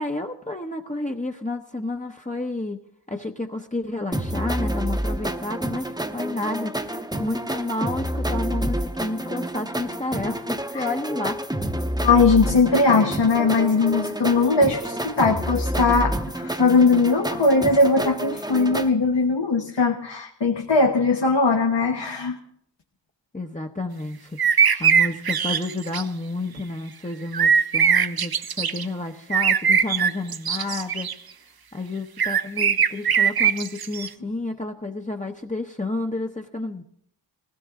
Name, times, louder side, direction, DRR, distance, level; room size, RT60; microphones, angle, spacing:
voice 1, 0.0-2.8 3.1-11.4 23.3-31.1 31.7-36.8, left 2 dB, 15° left, 2 dB, 1.0 m, -30 dB
sound 1, 4.1-18.9, right 1 dB, 10° right, 1.0 m, -28 dB
voice 2, 12.0-22.4 24.6-24.8, left 3 dB, 75° left, 1 dB, 1.3 m, -20 dB
sound 2, 24.4-26.0 27.3-28.8 29.3-31.1 32.2-34.1, right 7 dB, 55° right, 0.6 m, -20 dB
19.5 x 16.5 x 3.7 m, 0.69 s
wide cardioid pair, 60°, 43 cm